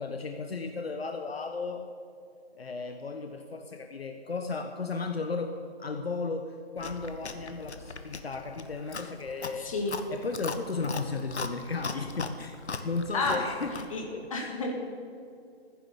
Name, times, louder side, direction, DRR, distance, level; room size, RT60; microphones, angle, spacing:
voice 1, 0.0-1.8 2.6-5.5 5.8-9.7 10.1-12.6 12.8-14.5, left 4 dB, 65° left, 5 dB, 1.3 m, -35 dB
Chewing mastication, 6.8-14.0, left 4 dB, 80° left, 1.5 m, -39 dB
voice 2, 9.6-10.0 13.1-13.4 13.9-14.0 14.3-14.7, left 3 dB, 30° left, 0 dB, 2.4 m, -30 dB
15.0 x 10.0 x 7.1 m, 2.4 s
hypercardioid pair, 165°, 33 cm